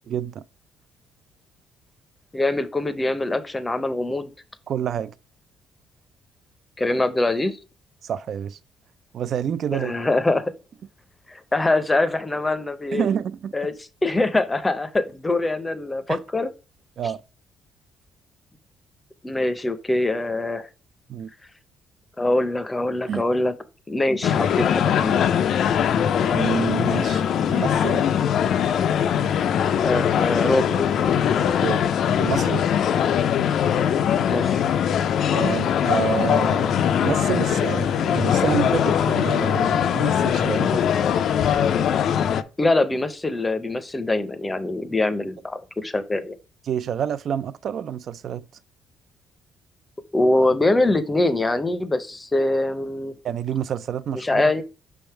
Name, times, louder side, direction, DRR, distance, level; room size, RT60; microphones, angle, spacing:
voice 1, 0.1-0.4 4.7-5.2 8.0-8.6 9.1-10.0 12.9-13.5 16.1-16.2 17.0-17.2 21.1-21.3 23.1-23.2 26.3-28.0 31.6-31.8 32.2-32.6 35.3-40.8 46.7-48.5 53.2-54.5, right 8 dB, 50° right, 0.4 m, -28 dB
voice 2, 2.3-4.3 6.8-7.6 9.7-10.5 11.3-13.1 13.5-13.7 14.0-16.5 19.2-20.7 22.2-23.5 23.9-25.2 29.8-31.1 34.3-34.6 42.6-46.4 50.1-53.1 54.1-54.6, left 2 dB, 15° left, 0.6 m, -23 dB
sound 1, 24.2-42.4, left 8 dB, 60° left, 0.4 m, -21 dB
6.1 x 3.4 x 4.5 m
cardioid pair, 135°, 0 cm